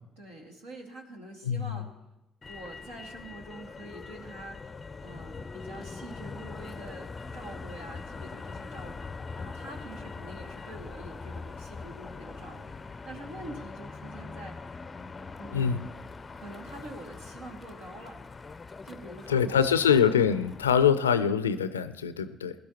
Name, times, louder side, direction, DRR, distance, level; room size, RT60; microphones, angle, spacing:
voice 1, 0.2-1.9 2.5-14.6 15.4-15.9 16.3-18.2 18.8-20.1, right 1 dB, 75° right, 0 dB, 2.3 m, -45 dB
voice 2, 1.4-1.8 15.5-15.9 19.3-22.5, left 7 dB, 90° left, 13 dB, 0.4 m, -24 dB
Motor vehicle (road), 2.4-20.9, left 4 dB, 30° left, 0.5 m, -42 dB
21.0 x 12.0 x 3.0 m, 0.93 s
hypercardioid pair, 50°, 0 cm